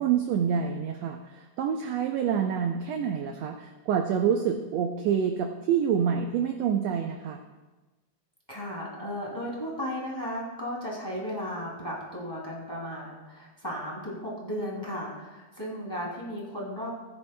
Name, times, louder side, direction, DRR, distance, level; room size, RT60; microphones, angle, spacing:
voice 1, 0.0-7.4, right 8 dB, 75° right, 5 dB, 1.6 m, -27 dB
voice 2, 8.5-16.9, equal, 10° left, -5 dB, 2.3 m, -35 dB
16.0 x 9.7 x 2.2 m, 1.2 s
omnidirectional pair, 3.4 m